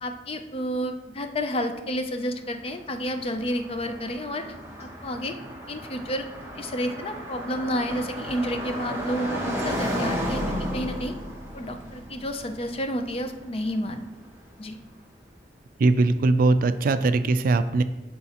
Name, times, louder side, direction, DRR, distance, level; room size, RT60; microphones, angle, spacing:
voice 1, 0.0-4.5 4.8-5.3 5.7-6.3 6.6-11.1 11.5-14.0 14.6-14.8, equal, 35° left, 7 dB, 0.5 m, -30 dB
Car passing by, 2.5-14.5, equal, 15° right, 1.2 m, -34 dB
voice 2, 15.8-17.8, right 3 dB, 55° right, 11 dB, 0.3 m, -20 dB
11.0 x 3.9 x 2.9 m, 1.0 s
head